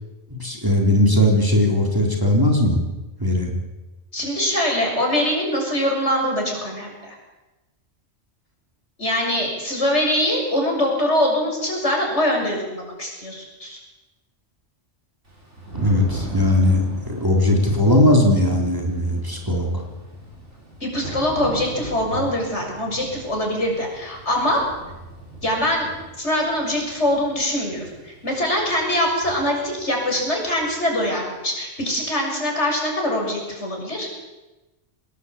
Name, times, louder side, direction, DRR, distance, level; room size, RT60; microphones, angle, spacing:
voice 1, 0.3-2.8 3.2-3.5 15.7-19.8, left 1 dB, 15° right, 0 dB, 4.0 m, -18 dB
voice 2, 4.1-7.2 9.0-13.8 20.8-24.6 25.4-25.9 26.2-34.1, left 1 dB, 70° left, 0 dB, 7.2 m, -23 dB
Thunder / Rain, 15.3-31.0, right 1 dB, 75° right, 7.4 m, -38 dB
24.5 x 20.0 x 8.5 m, 1.1 s
omnidirectional pair, 1.2 m